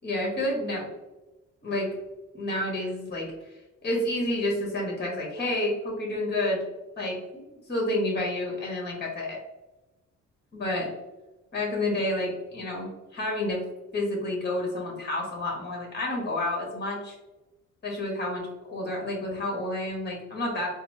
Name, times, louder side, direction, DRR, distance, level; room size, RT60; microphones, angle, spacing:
voice 1, 0.0-0.8 1.6-1.9 2.3-3.3 3.8-6.6 7.0-9.4 10.5-10.9 11.5-13.6 13.9-17.2 17.8-18.4 18.7-20.7, left 1 dB, 35° left, -1 dB, 1.4 m, -29 dB
4.1 x 2.1 x 2.7 m, 1.0 s
cardioid pair, 90°, 30 cm